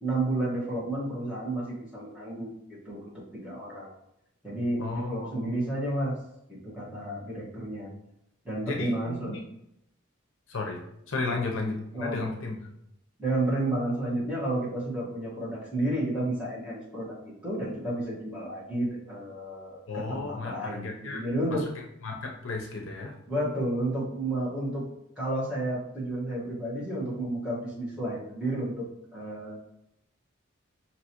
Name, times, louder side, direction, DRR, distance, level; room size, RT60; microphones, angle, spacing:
voice 1, 0.0-2.5 2.8-3.1 3.4-3.9 4.4-6.2 6.5-7.9 8.4-9.3 11.3-11.4 11.9-12.2 13.2-17.1 17.4-21.7 23.3-24.9 25.2-28.9 29.1-29.5, right 1 dB, 5° right, -9 dB, 1.5 m, -31 dB
voice 2, 4.8-5.6 8.6-9.4 10.5-10.8 11.1-12.7 19.9-21.2 21.5-21.7 22.0-23.2, left 3 dB, 75° left, 1 dB, 0.7 m, -34 dB
5.3 x 2.9 x 2.9 m, 0.79 s
head